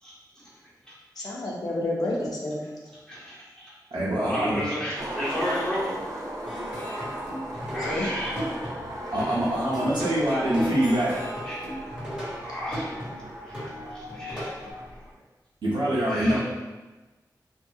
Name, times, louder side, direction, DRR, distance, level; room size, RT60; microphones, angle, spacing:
voice 1, 0.0-1.3 2.6-3.7 4.2-6.0 7.7-8.4 9.1-9.4 11.4-11.8 12.4-13.6 13.9-14.6 14.9-15.0 16.0-16.4, equal, 10° left, -8 dB, 1.1 m, -34 dB
voice 2, 1.2-2.6 7.9-8.1, left 1 dB, 55° left, -4 dB, 0.7 m, -29 dB
voice 3, 3.9-4.6 9.1-11.2 15.6-16.4, right 1 dB, 85° right, -9 dB, 0.7 m, -24 dB
Skateboard, 5.0-15.1, right 1 dB, 50° right, 0.6 m, -38 dB
Plucked string instrument, 6.5-14.7, equal, 10° right, 1.4 m, -36 dB
2.7 x 2.4 x 2.3 m, 1.2 s
wide cardioid pair, 65°, 7 cm